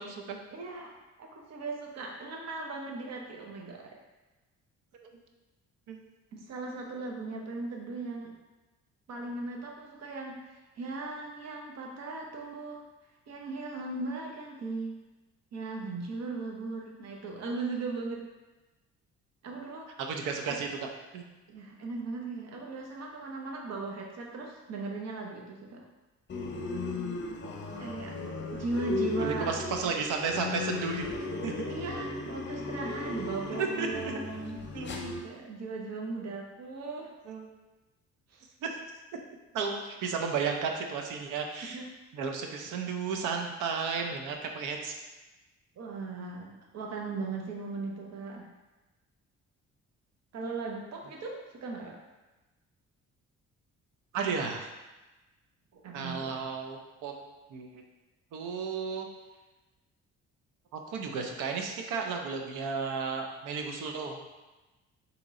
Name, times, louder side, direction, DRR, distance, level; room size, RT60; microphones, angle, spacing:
voice 1, 0.0-0.4 5.0-5.2 5.9-6.0 20.0-20.7 21.1-21.2 29.2-31.1 31.4-31.5 33.6-34.2 34.7-34.9 37.3-37.5 38.6-38.8 39.5-41.8 42.1-45.0 54.1-54.7 55.9-57.1 57.5-57.8 58.3-59.1 60.7-64.2, right 5 dB, 90° right, 3 dB, 0.6 m, -33 dB
voice 2, 0.5-4.0 6.3-8.3 9.1-12.8 13.3-15.0 15.5-18.2 19.4-19.9 21.5-25.8 27.8-28.1 28.5-29.6 31.7-37.1 38.3-38.4 41.6-41.8 45.8-48.5 50.3-52.0 55.7-56.5, right 3 dB, 60° right, 0 dB, 0.8 m, -38 dB
sound 1, 26.3-35.2, left 3 dB, 40° left, 0.6 m, -36 dB
3.6 x 2.9 x 4.1 m, 1.1 s
cardioid pair, 90°, 30 cm